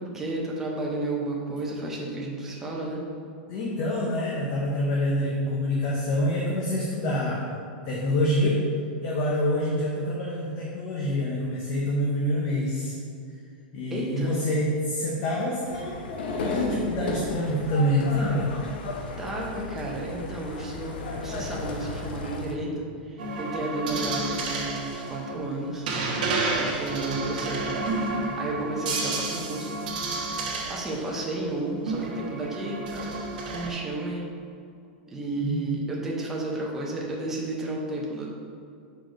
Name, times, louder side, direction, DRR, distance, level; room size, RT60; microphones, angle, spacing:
voice 1, 0.0-3.0 13.9-14.4 19.2-25.9 26.5-27.9 28.4-29.7 30.7-33.1 33.5-34.3 35.1-38.3, right 2 dB, 10° right, -3 dB, 0.6 m, -32 dB
voice 2, 3.5-7.5 7.9-8.6 9.0-12.9 13.7-18.5 35.4-35.8, left 1 dB, 30° left, -3 dB, 0.6 m, -26 dB
sound 1, 15.6-22.6, left 2 dB, 85° left, 0.7 m, -34 dB
sound 2, 23.2-31.1 31.9-33.7, right 3 dB, 60° right, 1.0 m, -30 dB
4.7 x 4.1 x 5.1 m, 2.4 s
supercardioid pair, 180°, 5 cm